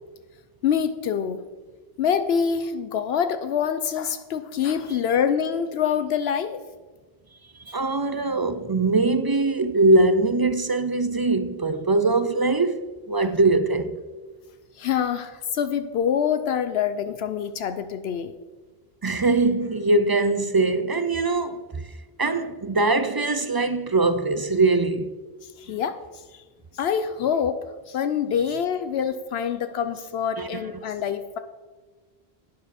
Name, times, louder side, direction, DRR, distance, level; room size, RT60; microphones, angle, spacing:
voice 1, 0.6-1.4 2.0-6.6 14.8-18.3 25.6-26.0 26.3-26.4 26.7-27.6 27.9-31.4, left 7 dB, 80° left, 0.9 m, -25 dB
voice 2, 7.7-14.0 19.0-21.6 22.2-25.1 25.7-25.8 30.4-30.5, right 2 dB, 35° right, 0.3 m, -22 dB
11.5 x 9.7 x 4.2 m
omnidirectional pair, 1.1 m